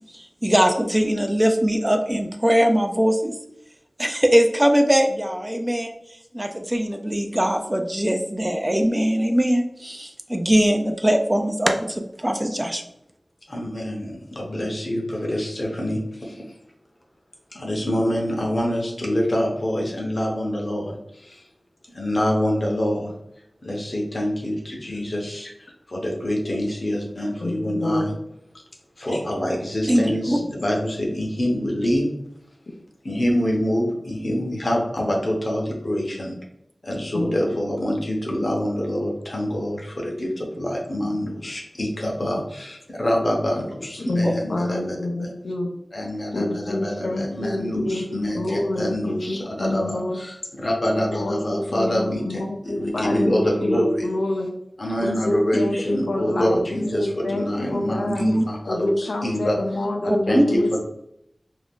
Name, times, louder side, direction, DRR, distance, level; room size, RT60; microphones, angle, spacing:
voice 1, 0.0-3.4 4.0-12.8 29.9-30.4 44.2-44.3 58.1-58.5 60.1-60.5, equal, 20° right, 0.4 m, -21 dB
voice 2, 13.5-16.5 17.5-21.5 21.9-23.1 23.6-28.1 29.0-32.1 33.0-36.3 36.8-45.3 45.9-54.1 54.8-59.6 60.3-60.8, equal, 60° left, 0.8 m, -26 dB
voice 3, 27.4-28.1 30.4-30.5 37.1-37.3 44.0-45.7 46.3-50.2 50.9-54.5 55.0-58.3 58.7-60.8, left 1 dB, 90° left, 0.4 m, -27 dB
2.6 x 2.3 x 3.5 m
wide cardioid pair, 45°, 0 cm